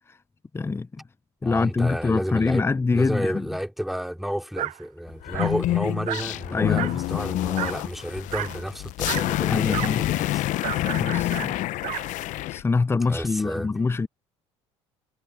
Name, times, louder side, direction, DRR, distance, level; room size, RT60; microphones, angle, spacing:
voice 1, 0.5-1.0 1.4-3.5 5.3-5.4 6.5-7.1 9.5-10.0 11.0-11.6 12.5-14.1, left 4 dB, 15° left, 0.7 m, -25 dB
voice 2, 1.4-2.7 2.9-10.4 13.1-13.7, equal, ahead, 3.6 m, -31 dB
Dog, 4.6-4.8 5.3-5.6 6.1-6.3 6.8-7.0 7.6-7.8 8.3-8.6 9.0-9.3 9.7-10.0 10.6-12.1, right 15 dB, 60° right, 0.7 m, -32 dB
sound 1, 5.2-12.6, left 16 dB, 65° left, 0.9 m, -27 dB
hypercardioid pair, 75°, 14 cm